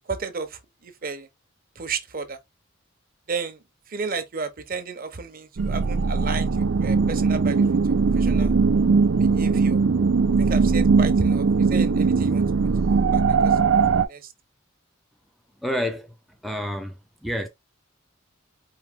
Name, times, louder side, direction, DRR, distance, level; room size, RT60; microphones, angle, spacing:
voice 1, 0.1-1.3 1.8-2.4 3.3-7.6 8.1-8.5 9.2-9.8 10.4-12.4 13.1-13.6 14.0-14.3, right 4 dB, 45° right, 0.8 m, -33 dB
sound 1, 5.6-14.0, right 4 dB, 90° right, 0.6 m, -20 dB
voice 2, 15.6-16.1 16.4-16.9 17.2-17.5, equal, ahead, 0.5 m, -28 dB
4.6 x 2.7 x 3.6 m
head